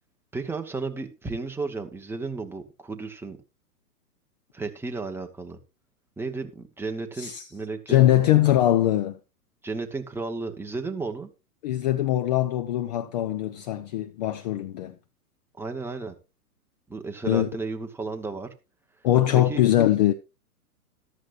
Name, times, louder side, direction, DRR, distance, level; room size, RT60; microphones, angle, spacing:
voice 1, 0.3-3.4 4.5-5.6 6.2-8.2 9.6-11.3 15.6-16.1 16.9-18.5 19.3-19.6, right 3 dB, 5° right, 1.0 m, -33 dB
voice 2, 7.2-7.5 7.9-9.2 11.6-14.9 17.3-17.5 19.0-20.1, left 13 dB, 30° left, 0.5 m, -22 dB
14.0 x 12.0 x 2.5 m
figure-of-eight pair, 115°, 47 cm